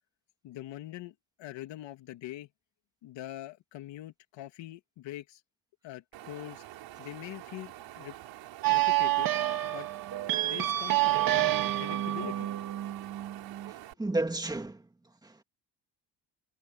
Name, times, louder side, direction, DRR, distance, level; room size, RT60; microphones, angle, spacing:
voice 1, 0.4-2.5 3.0-5.4 5.8-6.6 7.0-8.1 8.7-9.3 9.6-9.9 10.4-12.5 13.8-13.9, left 15 dB, 85° left, 2.6 m, -43 dB
Wind, 6.1-13.9, right 15 dB, 90° right, 4.7 m, -47 dB
sound 1, 8.6-13.7, right 15 dB, 55° right, 1.9 m, -28 dB
voice 2, 13.7-15.4, right 2 dB, 10° right, 2.0 m, -34 dB
cardioid pair, 160°, 43 cm